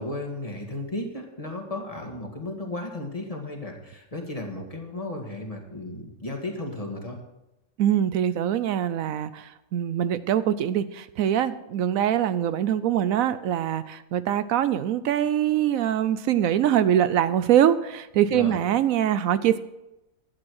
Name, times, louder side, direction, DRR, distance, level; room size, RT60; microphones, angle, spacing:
voice 1, 0.0-7.2 18.3-18.6, left 2 dB, 25° left, 2 dB, 2.0 m, -34 dB
voice 2, 7.8-19.6, right 10 dB, 80° right, 14 dB, 1.0 m, -23 dB
12.0 x 8.7 x 6.4 m, 0.94 s
omnidirectional pair, 1.5 m